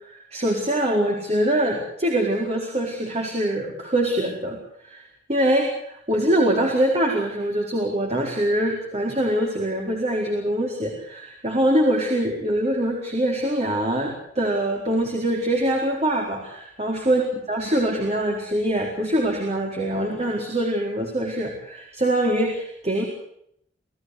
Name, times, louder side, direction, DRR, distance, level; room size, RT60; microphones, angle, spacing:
voice 1, 0.1-4.6 4.8-5.0 5.3-17.2 17.5-23.0, right 1 dB, 35° right, 1 dB, 4.4 m, -23 dB
27.5 x 16.0 x 8.1 m, 0.71 s
head